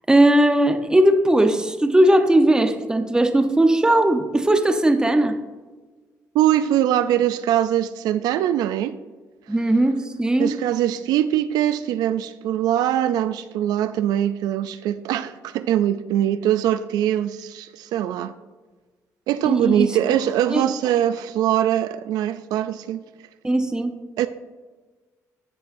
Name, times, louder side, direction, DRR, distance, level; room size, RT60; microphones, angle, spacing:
voice 1, 0.1-5.4 9.5-10.6 19.4-20.0 20.5-20.7 23.4-24.0, right 1 dB, 10° right, 0.8 m, -18 dB
voice 2, 6.3-9.0 10.4-18.3 19.3-23.0 24.2-24.3, right 11 dB, 85° right, 0.4 m, -22 dB
15.5 x 5.4 x 2.6 m
cardioid pair, 90°, 7 cm